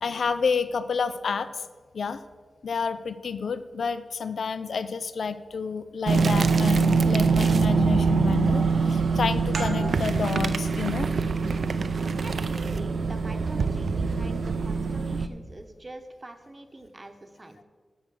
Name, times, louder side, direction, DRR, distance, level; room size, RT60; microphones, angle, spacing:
voice 1, 0.0-1.5 1.9-2.2 2.6-11.1, left 5 dB, 85° left, 13 dB, 0.4 m, -29 dB
sound 1, 6.1-15.3, right 4 dB, 70° right, 0.5 m, -24 dB
sound 2, 9.5-14.8, right 2 dB, 90° right, 1.2 m, -40 dB
voice 2, 12.2-17.6, right 2 dB, 25° right, 7 dB, 0.9 m, -44 dB
8.6 x 6.3 x 7.6 m, 1.5 s
wide cardioid pair, 135°, 0 cm